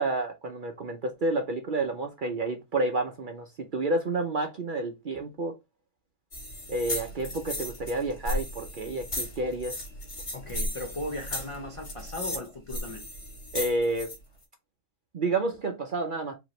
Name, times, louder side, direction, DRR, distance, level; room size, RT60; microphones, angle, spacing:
voice 1, 0.0-5.5 6.7-9.8 13.5-14.1 15.1-16.4, right 2 dB, 50° right, 0.7 m, -30 dB
sound 1, 6.3-14.2, left 1 dB, 60° left, 2.4 m, -35 dB
voice 2, 10.3-13.1, left 2 dB, 40° left, 0.5 m, -37 dB
5.0 x 2.9 x 3.0 m
omnidirectional pair, 1.3 m